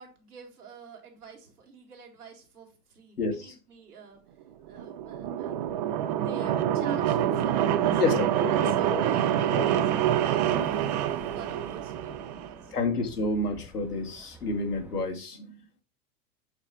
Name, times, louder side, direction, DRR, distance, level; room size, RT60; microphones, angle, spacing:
voice 1, 0.0-4.2 4.7-5.6 6.1-9.9 10.2-12.8, right 5 dB, 75° right, 1 dB, 2.3 m, -48 dB
voice 2, 3.2-3.6 7.9-9.0 9.5-9.7 12.7-15.6, left 3 dB, 80° left, 2 dB, 1.8 m, -30 dB
sound 1, 4.7-12.6, right 10 dB, 30° right, 0.4 m, -26 dB
sound 2, 9.3-15.1, right 1 dB, 5° right, 0.7 m, -48 dB
7.5 x 4.2 x 4.1 m, 0.33 s
figure-of-eight pair, 95°, 46 cm